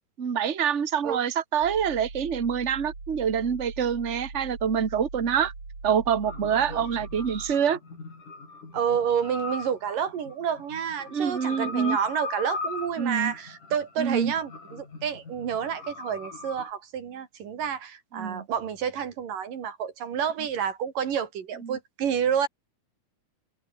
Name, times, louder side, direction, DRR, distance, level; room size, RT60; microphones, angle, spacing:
voice 1, 0.2-5.5 5.8-7.8 11.1-12.0 13.0-13.3 14.0-14.3 18.1-18.4 21.6-21.8, right 7 dB, 40° right, 1.1 m, -26 dB
sound 1, 1.6-7.5, right 3 dB, 55° right, 8.4 m, -41 dB
sound 2, 6.2-16.7, left 3 dB, 70° left, 9.6 m, -39 dB
voice 2, 8.7-22.5, right 8 dB, 85° right, 4.2 m, -29 dB
omnidirectional pair, 3.7 m